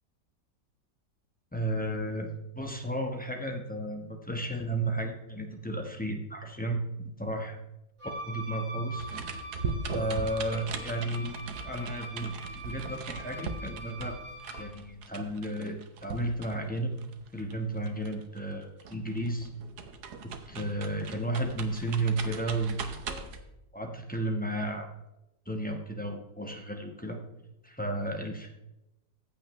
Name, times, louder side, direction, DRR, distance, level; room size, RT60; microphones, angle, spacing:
voice 1, 1.5-2.3 2.5-6.9 7.2-7.6 8.3-9.1 9.9-14.1 14.5-16.9 17.3-19.5 20.2-23.3 23.7-24.9 25.4-27.2 27.6-28.5, right 1 dB, 5° left, 3 dB, 1.0 m, -33 dB
Wind instrument woodwind instrument, 8.0-14.8, equal, 50° right, 3.5 m, -43 dB
sound 1, 9.0-18.5 18.8-23.4, right 4 dB, 65° right, 1.5 m, -39 dB
15.0 x 8.4 x 3.2 m, 0.91 s
omnidirectional pair, 1.9 m